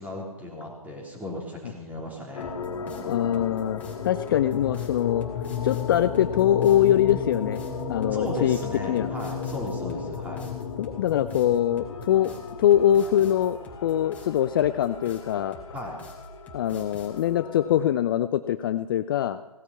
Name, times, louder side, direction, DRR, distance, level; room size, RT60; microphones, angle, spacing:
voice 1, 0.0-2.5 8.1-10.4 15.7-15.9, left 1 dB, 10° right, 0 dB, 3.3 m, -35 dB
sound 1, 2.3-17.9, left 6 dB, 55° left, 2.4 m, -35 dB
sound 2, 2.4-17.3, equal, 10° left, 2.9 m, -46 dB
voice 2, 3.1-5.2 5.6-7.6 7.9-8.6 8.9-9.1 10.8-12.3 12.6-15.6 16.5-19.4, left 11 dB, 35° left, 12 dB, 0.5 m, -23 dB
17.5 x 12.0 x 5.7 m, 1.1 s
figure-of-eight pair, 135°, 19 cm